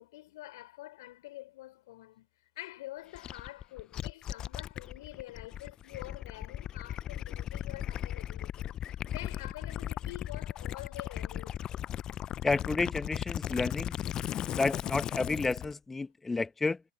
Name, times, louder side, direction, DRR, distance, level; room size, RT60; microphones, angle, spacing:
voice 1, 0.0-2.3 2.6-11.6, left 17 dB, 60° left, 5.4 m, -47 dB
Gurgling / Liquid, 3.1-15.7, left 11 dB, 30° left, 0.7 m, -37 dB
voice 2, 12.4-13.9 14.6-16.8, left 3 dB, 10° left, 1.1 m, -30 dB
figure-of-eight pair, 95°, 2 cm